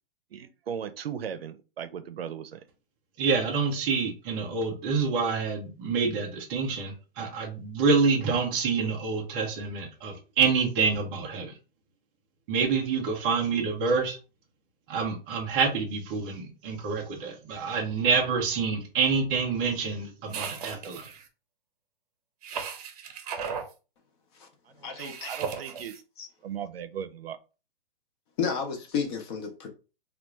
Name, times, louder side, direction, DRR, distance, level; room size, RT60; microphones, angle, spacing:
voice 1, 0.3-2.6 25.0-25.9 26.4-27.4, right 8 dB, 80° right, 0.6 m, -37 dB
voice 2, 3.2-11.6 12.5-14.2 14.9-21.1, right 5 dB, 10° right, 0.4 m, -27 dB
sound 1, 20.3-21.3 22.4-23.7 25.0-26.0, right 6 dB, 40° right, 0.7 m, -36 dB
voice 3, 24.8-25.3 26.2-26.3 28.4-29.7, left 6 dB, 30° left, 0.7 m, -32 dB
3.4 x 2.4 x 3.0 m
hypercardioid pair, 150°, 29 cm